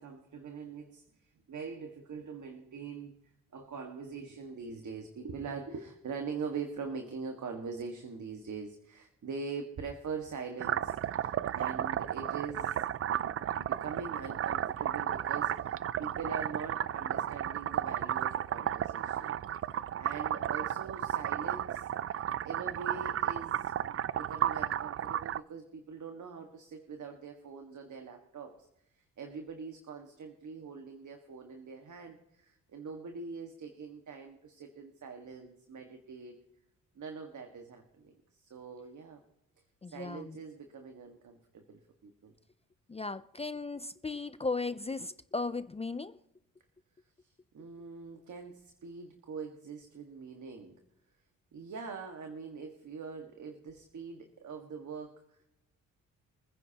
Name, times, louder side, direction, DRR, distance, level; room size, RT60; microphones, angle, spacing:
voice 1, 0.0-3.1 3.5-19.3 19.7-28.7 29.0-36.3 37.0-39.2 39.9-42.3 47.2-50.8 51.5-55.5, right 5 dB, 55° right, 4 dB, 1.8 m, -43 dB
sound 1, 10.6-25.4, right 10 dB, 40° right, 0.4 m, -33 dB
voice 2, 39.8-40.4 42.9-46.2, left 3 dB, 20° left, 13 dB, 0.5 m, -36 dB
25.5 x 9.9 x 2.9 m, 0.83 s
cardioid pair, 70°, 35 cm